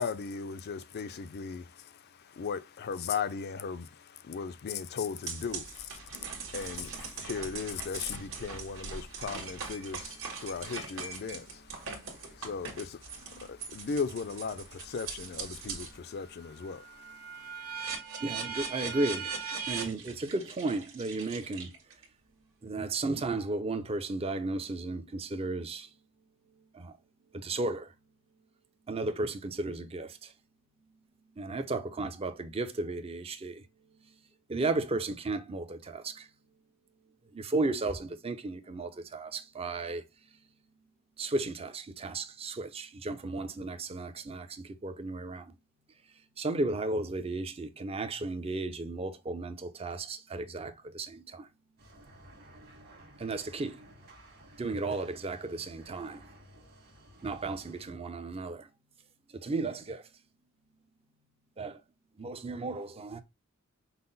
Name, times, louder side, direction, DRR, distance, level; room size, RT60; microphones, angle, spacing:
voice 1, 0.0-17.9, left 5 dB, 45° left, 0.4 m, -38 dB
voice 2, 2.0-2.4 8.9-13.9 14.8-18.8 21.2-21.9 22.1-23.0 24.4-27.6 28.2-29.1 30.4-32.4 33.3-34.6 35.5-37.5 38.3-39.6 39.8-41.3 41.9-42.6 45.3-46.5 50.0-50.9 51.2-53.3 54.2-54.6 56.2-57.3 58.0-59.4 60.4-61.6, right 4 dB, 85° right, 0.8 m, -69 dB
sound 1, 5.3-16.0 16.4-22.0, right 5 dB, 65° right, 1.4 m, -40 dB
voice 3, 18.2-19.4 19.7-22.0 22.6-25.9 26.7-27.0 27.3-27.9 28.9-30.3 31.4-33.7 34.5-36.3 37.3-40.0 41.2-45.6 46.4-51.5 53.2-53.8 54.6-56.3 57.2-58.7 59.3-60.1 61.6-61.8 62.2-63.2, right 2 dB, 25° right, 0.5 m, -34 dB
sound 2, 51.8-57.9, right 1 dB, 45° right, 1.5 m, -55 dB
5.6 x 2.0 x 3.9 m
head